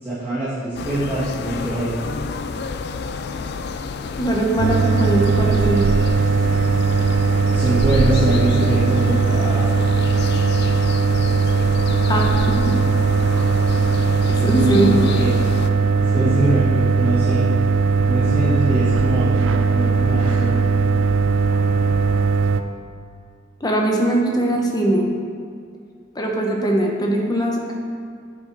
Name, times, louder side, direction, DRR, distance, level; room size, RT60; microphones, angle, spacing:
voice 1, 0.0-2.2 7.5-9.6 14.6-14.8 15.1-15.3 16.0-17.5 18.1-20.7, right 1 dB, 10° right, -15 dB, 2.0 m, -23 dB
sound 1, 0.8-15.7, left 4 dB, 60° left, 0.4 m, -30 dB
voice 2, 4.2-5.8 10.8-10.9 12.1-12.7 14.3-15.0 23.6-25.1 26.1-27.7, right 1 dB, 20° left, 0 dB, 1.0 m, -20 dB
sound 2, 4.6-22.6, right 4 dB, 85° right, 0.4 m, -18 dB
8.3 x 4.8 x 4.7 m, 2.2 s
head